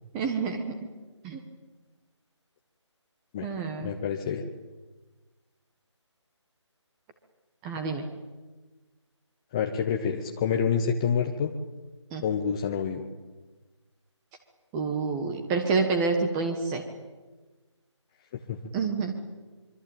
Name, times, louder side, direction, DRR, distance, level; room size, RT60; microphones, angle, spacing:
voice 1, 0.1-0.8 1.2-1.4 3.4-3.9 7.6-8.0 12.1-12.2 14.7-16.8 18.7-19.1, right 4 dB, 10° right, 5 dB, 1.3 m, -28 dB
voice 2, 3.8-4.4 9.5-11.5 12.2-13.1 18.3-18.6, left 7 dB, 10° left, 4 dB, 0.8 m, -28 dB
25.0 x 24.5 x 9.0 m, 1.3 s
figure-of-eight pair, 165°, 16 cm